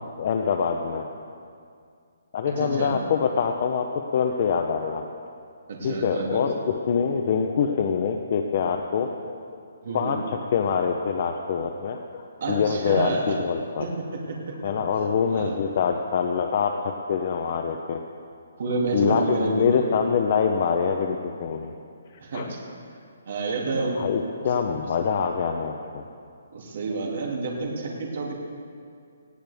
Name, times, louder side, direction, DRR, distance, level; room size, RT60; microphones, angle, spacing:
voice 1, 0.2-1.1 2.3-5.1 5.8-9.4 9.9-13.8 14.6-16.7 17.1-18.0 18.9-21.7 22.3-22.5 24.0-26.0, left 6 dB, 35° left, 4 dB, 0.7 m, -25 dB
voice 2, 2.5-3.0 5.7-6.4 9.8-10.1 12.4-13.4 13.8-14.5 15.3-15.5 18.6-19.9 22.2-22.6 23.3-24.1 26.5-28.3, right 3 dB, 45° right, -1 dB, 2.5 m, -29 dB
19.5 x 16.5 x 3.5 m, 2.3 s
hypercardioid pair, 180°, 0 cm